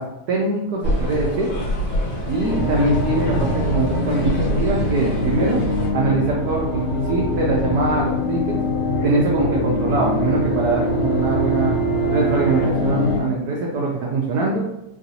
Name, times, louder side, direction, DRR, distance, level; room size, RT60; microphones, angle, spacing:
voice 1, 0.0-1.5 2.3-5.6 5.9-8.6 9.0-11.8 12.1-14.6, right 3 dB, 70° right, -3 dB, 0.9 m, -22 dB
sound 1, 0.8-5.9, equal, 60° left, 1.5 m, -26 dB
sound 2, 2.4-13.2, left 1 dB, 85° left, 1.6 m, -23 dB
3.8 x 2.6 x 2.7 m, 0.90 s
omnidirectional pair, 2.3 m